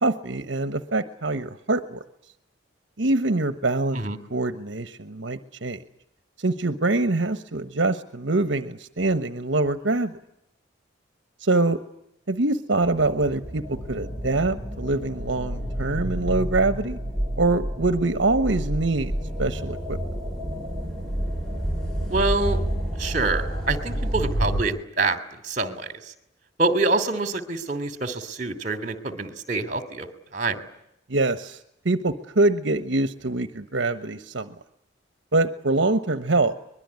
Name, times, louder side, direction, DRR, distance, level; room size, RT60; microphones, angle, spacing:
voice 1, 0.0-2.0 3.0-4.0 4.3-5.8 6.4-10.1 11.4-11.8 12.3-17.0 17.4-19.1 19.4-20.0 31.1-31.6 31.8-34.5 35.3-36.5, right 2 dB, 70° right, 10 dB, 1.2 m, -24 dB
sound 1, 12.8-24.6, equal, 5° left, 3.9 m, -29 dB
voice 2, 22.1-22.6 23.0-25.2 25.4-26.1 26.6-30.1 30.3-30.6, right 3 dB, 40° right, 10 dB, 2.8 m, -26 dB
24.0 x 22.0 x 9.7 m, 0.78 s
head